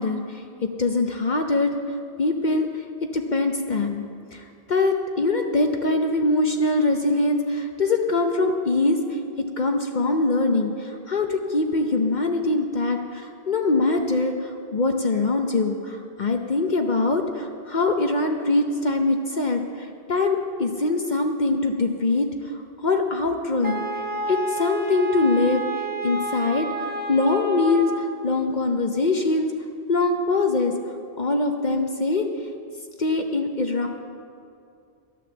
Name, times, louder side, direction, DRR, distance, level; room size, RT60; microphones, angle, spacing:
voice 1, 0.0-1.7 2.2-2.7 3.1-4.0 4.3-9.2 9.6-23.8 24.3-25.6 26.0-26.7 27.1-29.5 29.9-30.7 31.2-32.2 33.0-33.9, left 3 dB, 50° left, 4 dB, 0.9 m, -23 dB
Wind instrument woodwind instrument, 23.6-28.2, right 3 dB, 10° right, 1.2 m, -30 dB
13.0 x 9.3 x 7.0 m, 2.4 s
omnidirectional pair, 1.1 m